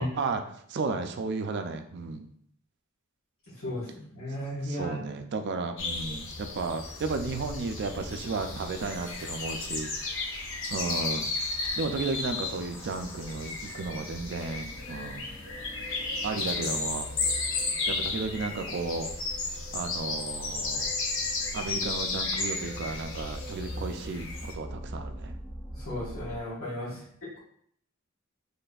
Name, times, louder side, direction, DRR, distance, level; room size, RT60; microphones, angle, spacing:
voice 1, 0.0-2.3 4.6-9.9 10.7-11.3 11.8-15.3 16.2-17.1 17.9-19.1 19.7-20.9 21.5-25.4 26.9-27.0, right 4 dB, 55° right, 7 dB, 0.4 m, -33 dB
voice 2, 3.5-5.0 25.7-27.4, left 1 dB, 90° left, -9 dB, 1.4 m, -35 dB
sound 1, 5.8-24.5, left 3 dB, 65° left, 0.7 m, -34 dB
sound 2, 14.7-26.4, equal, 10° left, 0.5 m, -45 dB
4.1 x 3.2 x 2.3 m, 0.64 s
head